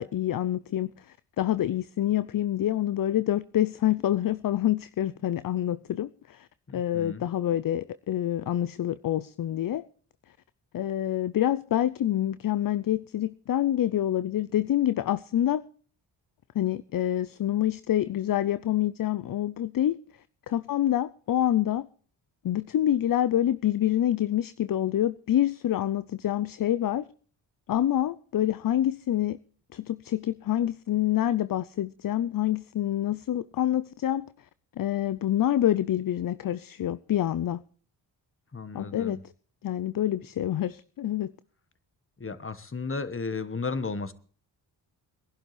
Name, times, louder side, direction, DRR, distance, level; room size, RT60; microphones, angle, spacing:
voice 1, 0.0-6.5 6.7-9.9 10.7-15.6 16.5-20.0 20.5-21.9 22.4-27.1 27.7-29.4 29.7-34.3 34.8-37.6 38.7-39.2 39.6-41.3, left 12 dB, 45° left, 0.6 m, -27 dB
voice 2, 6.7-7.2 38.5-39.2 42.2-44.1, left 4 dB, 25° left, 1.4 m, -34 dB
21.5 x 11.5 x 3.3 m
hypercardioid pair, 40°, 50 cm